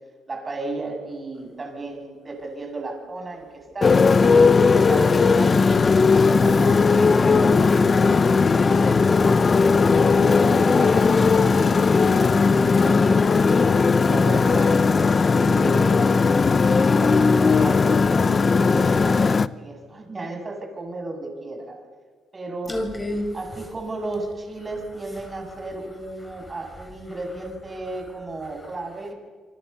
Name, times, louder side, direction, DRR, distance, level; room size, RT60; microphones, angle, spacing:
voice 1, 0.3-5.8 6.2-9.4 9.9-15.1 15.3-21.8 22.3-22.8 23.3-29.1, right 2 dB, 30° right, 3 dB, 7.2 m, -34 dB
Motorcycle, 3.8-19.5, left 4 dB, 35° left, 0.8 m, -17 dB
voice 2, 22.6-23.7 24.0-24.1 24.6-28.1 28.4-29.1, left 1 dB, 15° left, 5 dB, 6.2 m, -37 dB
28.0 x 25.0 x 7.0 m, 1.5 s
cardioid pair, 90°, 0 cm